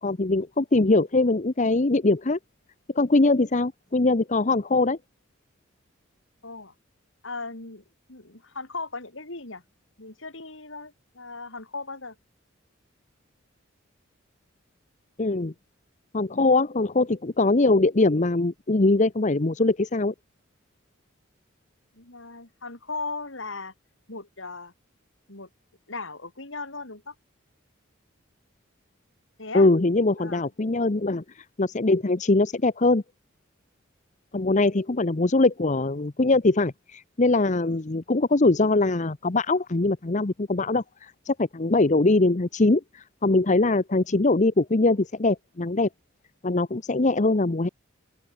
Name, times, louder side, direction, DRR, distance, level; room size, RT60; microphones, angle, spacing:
voice 1, 0.0-2.4 2.9-5.0 15.2-15.5 16.1-20.1 29.5-33.0 34.3-45.9 46.4-47.7, left 2 dB, 35° left, 0.8 m, -22 dB
voice 2, 6.4-6.7 7.2-7.8 8.1-9.6 10.0-12.2 21.9-23.7 24.1-24.7 25.3-25.5 25.9-27.1 29.4-29.7 30.2-30.5, left 3 dB, 70° left, 4.1 m, -37 dB
open air
head